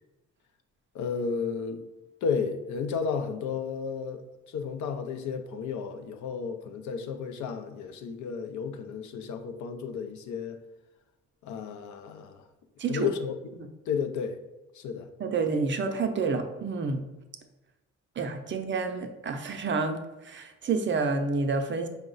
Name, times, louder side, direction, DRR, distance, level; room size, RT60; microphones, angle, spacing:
voice 1, 0.9-1.8 2.2-4.2 4.5-10.6 11.4-12.4 12.9-13.4 13.9-14.4 14.8-15.1, left 6 dB, 75° left, 7 dB, 0.5 m, -32 dB
voice 2, 15.2-17.0 18.2-21.9, right 4 dB, 40° right, 6 dB, 0.5 m, -29 dB
4.7 x 2.1 x 3.8 m, 1.0 s
cardioid pair, 90°, 30 cm